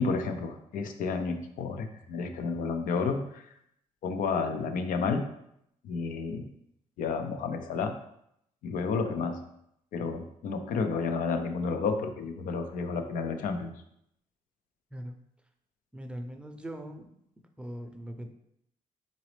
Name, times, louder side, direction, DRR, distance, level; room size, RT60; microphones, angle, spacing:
voice 1, 0.0-3.4 4.0-5.2 5.8-6.5 7.0-7.9 8.6-9.4 9.9-13.7, left 4 dB, 90° left, 6 dB, 0.6 m, -31 dB
voice 2, 15.9-17.1 17.6-18.3, equal, 10° right, 5 dB, 0.5 m, -40 dB
4.1 x 3.9 x 3.2 m, 0.76 s
cardioid pair, 100°, 13 cm